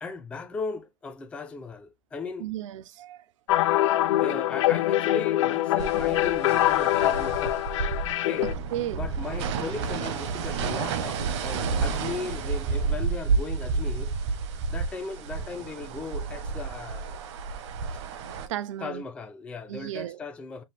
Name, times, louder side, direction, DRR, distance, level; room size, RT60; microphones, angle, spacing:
voice 1, 0.0-2.5 4.2-8.5 8.9-14.1 14.7-17.2 18.8-20.6, left 4 dB, 5° left, 0.4 m, -37 dB
voice 2, 2.4-3.2 8.4-9.0 17.6-17.7 18.5-19.0 19.7-20.2, right 12 dB, 80° right, 0.6 m, -34 dB
sound 1, 3.5-8.5, left 14 dB, 75° left, 0.6 m, -24 dB
sound 2, 5.8-18.5, right 5 dB, 65° right, 1.1 m, -30 dB
5.5 x 2.4 x 3.3 m
supercardioid pair, 160°, 16 cm